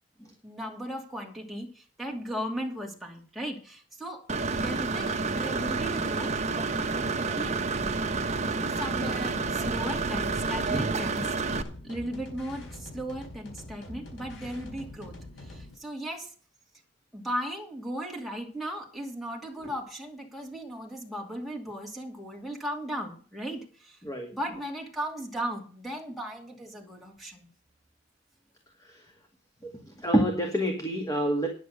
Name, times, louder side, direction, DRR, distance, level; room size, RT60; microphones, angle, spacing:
voice 1, 0.4-4.3 4.5-7.6 8.8-11.3 11.8-16.3 17.1-24.0 24.3-27.5, right 1 dB, ahead, -2 dB, 2.6 m, -36 dB
Engine / Mechanisms, 4.3-11.6, right 3 dB, 35° right, 1.1 m, -29 dB
sound 1, 8.0-15.7, left 1 dB, 70° left, 4.7 m, -44 dB
voice 2, 24.0-24.3 28.8-29.1 29.6-29.7 30.0-31.5, equal, 20° left, 3 dB, 2.1 m, -27 dB
10.0 x 8.6 x 6.5 m, 0.39 s
head